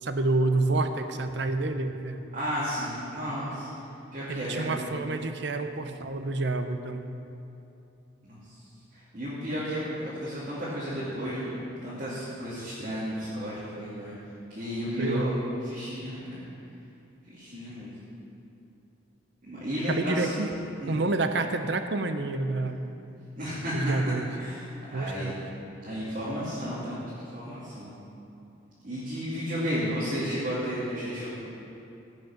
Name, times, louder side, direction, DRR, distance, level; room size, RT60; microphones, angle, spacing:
voice 1, 0.0-2.3 4.3-7.1 15.0-15.3 19.9-20.5 20.9-22.9 23.7-24.3 24.9-25.3, right 2 dB, 55° right, 8 dB, 0.7 m, -28 dB
voice 2, 2.3-3.7 4.1-5.1 8.2-8.6 8.9-11.5 11.8-14.1 14.5-16.4 17.2-17.9 19.4-20.3 20.8-21.0 23.4-25.3 25.8-27.9 28.8-31.3, equal, 40° right, -10 dB, 2.5 m, -33 dB
16.0 x 6.2 x 5.9 m, 2.7 s
head